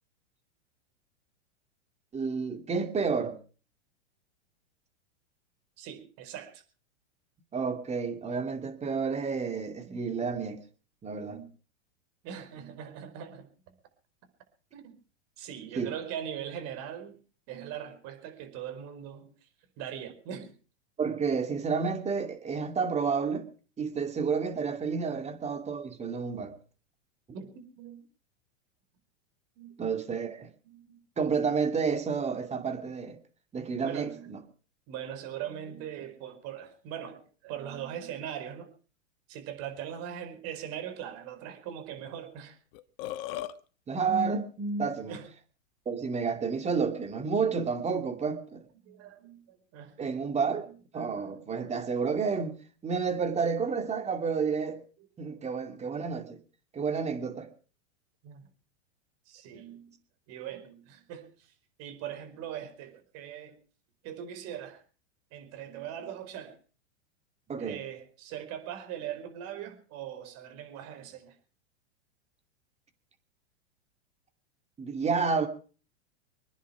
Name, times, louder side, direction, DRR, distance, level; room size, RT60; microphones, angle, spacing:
voice 1, 2.1-3.4 7.5-10.6 11.0-11.4 15.8-15.9 21.0-23.5 23.8-26.5 29.8-30.5 31.2-33.2 33.5-34.4 43.9-45.2 45.9-48.6 50.0-50.7 50.9-54.8 55.2-56.4 56.7-57.5 67.5-67.8 74.8-75.5, right 5 dB, 20° right, 2.5 m, -30 dB
voice 2, 5.8-6.6 9.9-10.0 11.1-11.5 12.2-13.5 14.7-14.9 15.4-17.2 17.5-19.5 19.8-20.5 25.0-25.2 27.3-28.0 29.6-29.7 30.6-31.0 32.3-32.6 33.8-34.3 34.9-38.7 39.3-42.6 45.1-45.3 48.8-51.2 55.3-55.4 58.2-58.5 59.3-59.9 60.3-61.5 61.8-63.6 64.0-64.8 65.3-66.6 67.6-71.4, right 9 dB, 45° right, 4.8 m, -41 dB
Burping eructation, 42.4-42.5 42.7-43.5, left 13 dB, 50° left, 1.4 m, -36 dB
25.5 x 10.5 x 4.9 m
hypercardioid pair, 120°, 36 cm